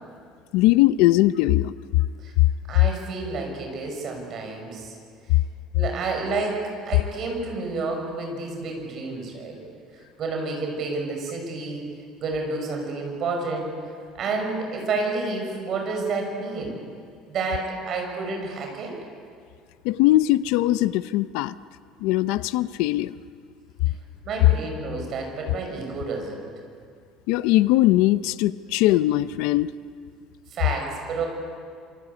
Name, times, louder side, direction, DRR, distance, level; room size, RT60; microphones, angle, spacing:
voice 1, 0.5-1.7 19.8-21.5 22.0-23.1 27.3-29.7, left 16 dB, 70° left, 14 dB, 0.7 m, -20 dB
voice 2, 2.7-5.0 5.7-9.6 9.9-11.9 12.2-13.7 14.1-16.8 17.3-18.9 24.2-26.5 30.5-31.3, right 3 dB, 35° right, 2 dB, 6.1 m, -30 dB
27.5 x 25.0 x 8.5 m, 2.2 s
cardioid pair, 180°, 0 cm